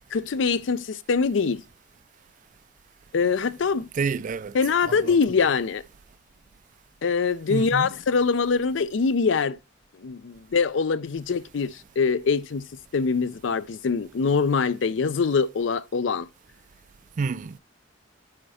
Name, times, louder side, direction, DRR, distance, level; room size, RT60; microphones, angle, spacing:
voice 1, 0.1-1.6 3.1-3.9 4.5-5.8 7.0-9.6 10.0-12.6 12.9-16.3, left 5 dB, 80° left, 0.5 m, -23 dB
voice 2, 3.9-4.5 4.8-5.2 7.5-7.9 17.2-17.6, right 5 dB, 45° right, 0.4 m, -29 dB
10.0 x 4.4 x 4.1 m
head